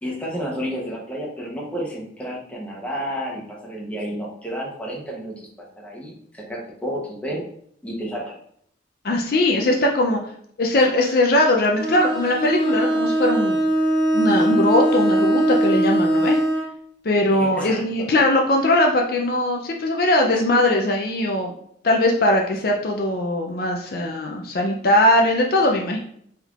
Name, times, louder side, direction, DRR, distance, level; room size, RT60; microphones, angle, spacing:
voice 1, 0.0-5.4 5.8-7.4 7.8-8.3 11.0-11.2 17.3-18.1, equal, 5° left, -3 dB, 0.8 m, -31 dB
voice 2, 9.0-10.2 10.6-13.6 14.1-16.4 17.0-21.5 21.8-26.0, left 1 dB, 50° left, 1 dB, 0.5 m, -20 dB
Bowed string instrument, 11.8-16.7, right 1 dB, 25° right, 0.7 m, -20 dB
4.3 x 3.5 x 2.4 m, 0.66 s
head